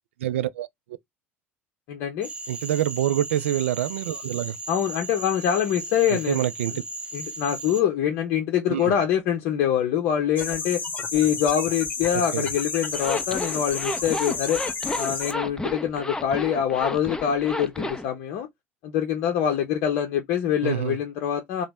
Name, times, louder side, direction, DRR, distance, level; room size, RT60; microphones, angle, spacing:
voice 1, 0.2-0.7 2.5-4.6 6.1-6.7 8.7-8.9 12.1-12.5 20.6-21.0, right 12 dB, 75° right, 0.3 m, -26 dB
voice 2, 1.9-2.3 4.7-6.5 6.7-6.8 7.1-10.8 11.1-14.6 14.9-18.5 18.8-21.6, left 9 dB, 60° left, 0.6 m, -24 dB
Cricket / Frog, 2.2-7.8, right 2 dB, 15° right, 0.8 m, -37 dB
sound 1, 10.4-15.3, left 4 dB, 25° left, 1.0 m, -31 dB
Zipper (clothing), 12.9-18.1, left 2 dB, 10° left, 0.5 m, -31 dB
2.9 x 2.0 x 3.4 m
figure-of-eight pair, 65°, 7 cm